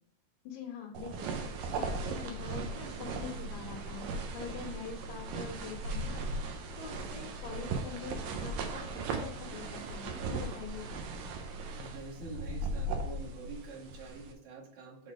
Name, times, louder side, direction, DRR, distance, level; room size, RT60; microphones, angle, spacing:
voice 1, 0.4-8.8 9.1-11.0, left 6 dB, 65° left, -2 dB, 2.2 m, -45 dB
sound 1, 0.9-14.3, right 3 dB, 85° right, 2.5 m, -38 dB
voice 2, 11.7-15.1, right 3 dB, 65° right, -3 dB, 3.1 m, -46 dB
6.9 x 4.0 x 4.8 m, 0.70 s
omnidirectional pair, 3.7 m